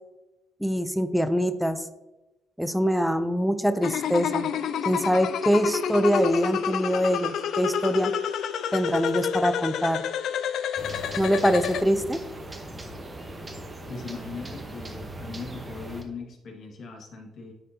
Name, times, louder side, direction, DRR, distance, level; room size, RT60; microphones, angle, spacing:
voice 1, 0.6-1.8 2.6-4.5 4.8-8.1 8.7-10.0 11.2-12.2, equal, ahead, 10 dB, 0.5 m, -24 dB
sound 1, 3.8-11.8, left 8 dB, 75° left, 0.3 m, -29 dB
sound 2, 10.8-16.0, right 1 dB, 25° right, 1.0 m, -39 dB
voice 2, 13.9-17.5, left 4 dB, 60° left, 0 dB, 1.7 m, -39 dB
9.9 x 4.2 x 2.8 m, 1.0 s
cardioid pair, 90°, 0 cm